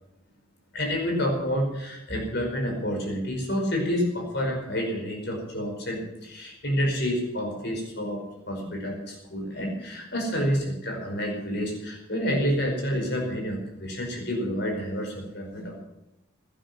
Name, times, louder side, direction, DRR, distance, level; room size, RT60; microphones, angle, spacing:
voice 1, 0.7-15.8, equal, 50° left, 1 dB, 5.2 m, -29 dB
16.5 x 11.0 x 6.2 m, 0.91 s
head